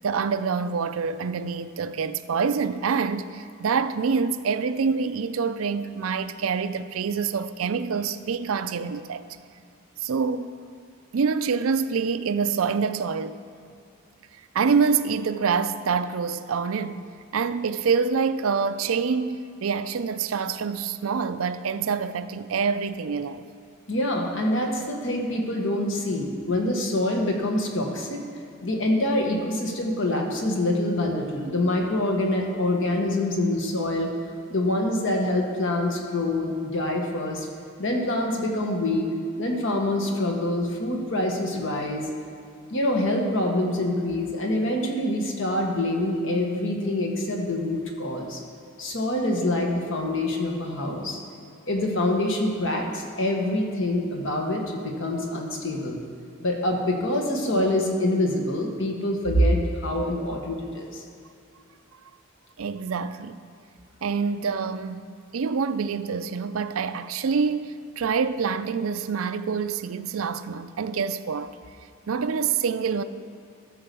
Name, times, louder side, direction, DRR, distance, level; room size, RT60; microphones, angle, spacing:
voice 1, 0.0-9.2 10.0-10.5 11.1-13.4 14.5-17.1 17.3-23.5 62.6-63.4 64.0-71.5 72.1-73.0, right 5 dB, 80° right, 0.5 m, -26 dB
voice 2, 23.9-28.2 28.6-34.1 34.5-37.5 37.8-39.1 39.4-42.1 42.7-48.4 48.8-51.2 51.7-56.0 56.4-61.0, left 1 dB, 65° left, 1.5 m, -25 dB
13.5 x 4.9 x 6.9 m
head